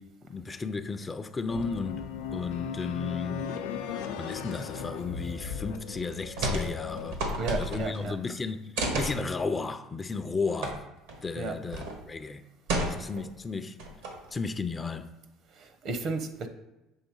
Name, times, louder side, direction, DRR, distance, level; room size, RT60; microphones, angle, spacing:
voice 1, 0.0-3.6 4.2-7.2 7.5-10.9 11.2-12.4 12.8-13.8 14.3-15.1, left 4 dB, 25° left, 0.4 m, -34 dB
sound 1, 1.5-7.2, left 6 dB, 85° left, 0.5 m, -37 dB
sound 2, 6.4-6.7 7.0-8.1 8.8-9.2 10.6-10.7 11.1-11.2 11.7-12.0 12.7-13.3 13.8-14.3, right 1 dB, 85° right, 1.3 m, -30 dB
voice 2, 7.4-8.2 11.4-11.6 15.6-16.5, right 3 dB, 55° right, 0.8 m, -33 dB
6.5 x 3.3 x 4.6 m
supercardioid pair, 85°, 0 cm